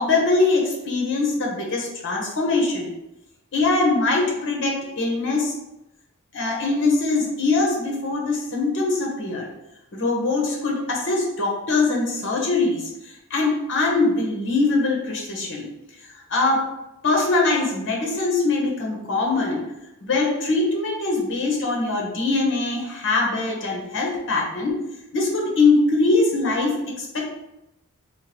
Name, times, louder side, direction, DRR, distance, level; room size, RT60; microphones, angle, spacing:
voice 1, 0.0-2.9 3.5-5.5 6.3-9.5 9.9-15.7 16.3-16.7 17.0-19.6 20.0-24.8 25.1-27.2, left 3 dB, 55° left, -1 dB, 0.9 m, -22 dB
3.7 x 2.9 x 3.0 m, 0.89 s
head